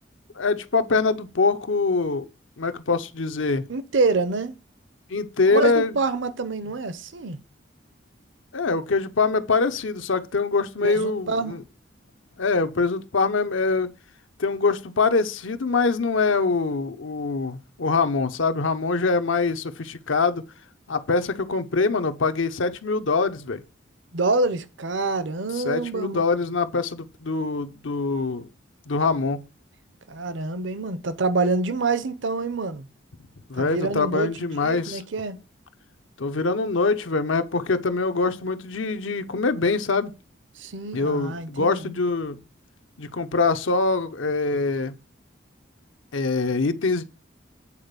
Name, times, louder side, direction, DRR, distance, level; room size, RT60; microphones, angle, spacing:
voice 1, 0.4-2.2 2.6-3.6 5.1-6.0 8.5-11.6 12.4-13.9 14.4-20.4 20.9-23.6 25.6-28.5 28.9-29.4 33.5-35.0 36.2-40.1 40.9-42.4 43.0-44.9 46.1-47.0, left 4 dB, 85° left, 0.8 m, -24 dB
voice 2, 3.7-4.5 5.5-7.4 10.8-11.6 24.1-26.2 30.1-32.9 33.6-35.4 40.6-42.0, right 3 dB, 70° right, 0.7 m, -26 dB
8.4 x 4.1 x 6.8 m
head